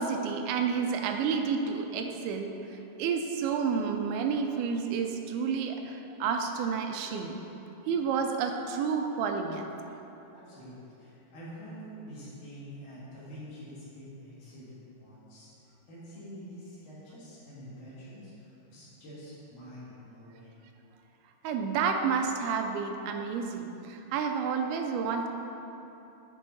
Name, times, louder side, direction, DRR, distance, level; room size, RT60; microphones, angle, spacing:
voice 1, 0.0-7.4 7.9-10.0 21.4-25.3, right 6 dB, 85° right, 4 dB, 2.4 m, -30 dB
voice 2, 10.3-15.5 15.9-20.5, equal, 60° left, -9 dB, 3.0 m, -46 dB
9.9 x 4.9 x 3.9 m, 3.0 s
omnidirectional pair, 4.4 m